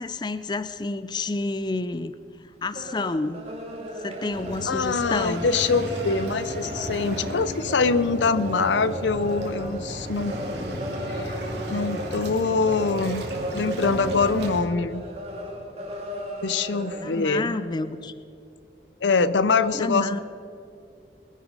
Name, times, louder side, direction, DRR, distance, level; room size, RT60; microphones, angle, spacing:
voice 1, 0.0-2.1 2.6-3.4 4.0-5.5 17.0-18.1 19.7-20.2, left 3 dB, 25° left, 13 dB, 0.4 m, -29 dB
sound 1, 2.5-17.6, equal, 35° right, 2.1 m, -35 dB
Waves surf, 4.3-14.6, equal, 75° right, 2.3 m, -35 dB
voice 2, 4.7-10.4 11.1-11.3 11.7-15.0 16.4-17.5 19.0-20.2, left 4 dB, 85° left, 14 dB, 0.6 m, -24 dB
21.5 x 10.0 x 4.8 m, 2.6 s
head